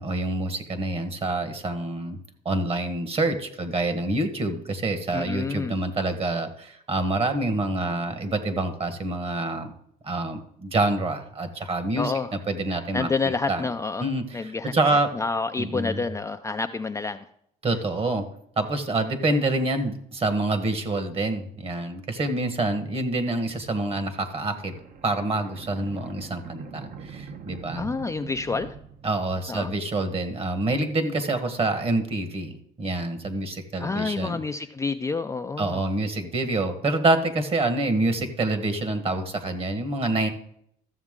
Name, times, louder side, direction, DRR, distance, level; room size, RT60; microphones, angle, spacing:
voice 1, 0.0-2.2 2.4-9.7 10.0-13.1 13.5-13.6 14.0-15.1 15.6-16.0 17.6-18.2 18.6-24.7 25.0-27.9 29.0-34.4 35.6-40.3, right 2 dB, 35° right, 8 dB, 1.4 m, -27 dB
voice 2, 5.1-5.7 12.0-12.3 12.9-14.0 14.3-17.2 27.8-28.7 29.5-29.7 33.8-35.8, left 4 dB, 15° left, 7 dB, 0.4 m, -28 dB
sound 1, 24.2-29.8, right 5 dB, 50° right, 1.0 m, -43 dB
13.5 x 7.2 x 3.7 m, 0.71 s
cardioid pair, 110°, 17 cm